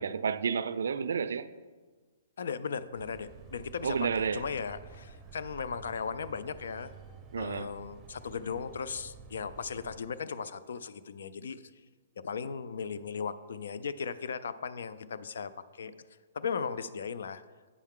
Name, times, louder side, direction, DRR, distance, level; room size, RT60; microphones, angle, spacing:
voice 1, 0.0-1.5 3.8-4.4 7.3-7.7, right 6 dB, 80° right, 0.3 m, -31 dB
voice 2, 2.4-6.9 7.4-11.6 12.2-15.9 16.3-17.4, left 6 dB, 75° left, 0.4 m, -37 dB
sound 1, 2.9-10.0, right 5 dB, 15° right, 0.7 m, -51 dB
8.3 x 5.5 x 3.6 m
hypercardioid pair, 150°, 0 cm